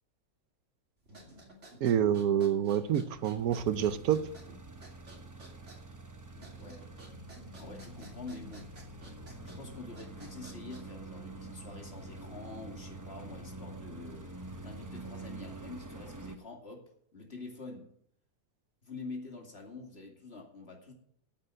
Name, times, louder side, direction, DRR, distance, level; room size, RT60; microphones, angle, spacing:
sound 1, 1.0-11.1, right 1 dB, 55° right, 3.0 m, -54 dB
voice 1, 1.8-4.2, right 9 dB, 80° right, 13 dB, 1.2 m, -27 dB
sound 2, 2.9-16.4, right 2 dB, 20° right, 0.6 m, -46 dB
voice 2, 7.5-8.7 9.6-16.8 17.1-17.9 18.8-20.9, left 3 dB, 45° left, 0 dB, 2.8 m, -46 dB
9.4 x 7.6 x 9.0 m, 0.68 s
omnidirectional pair, 1.5 m